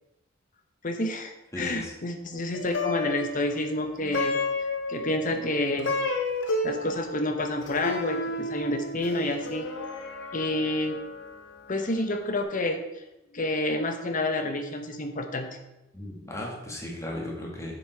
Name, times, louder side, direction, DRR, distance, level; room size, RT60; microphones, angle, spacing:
voice 1, 0.8-4.4 4.9-5.9 6.6-9.7 10.3-11.0 11.7-12.8 13.3-15.5, left 1 dB, 40° left, 6 dB, 0.9 m, -29 dB
voice 2, 1.5-1.9 15.9-17.8, left 1 dB, 15° left, -1 dB, 1.8 m, -36 dB
Plucked string instrument, 2.5-12.0, left 3 dB, 60° left, 1.1 m, -32 dB
7.5 x 7.1 x 4.6 m, 0.93 s
head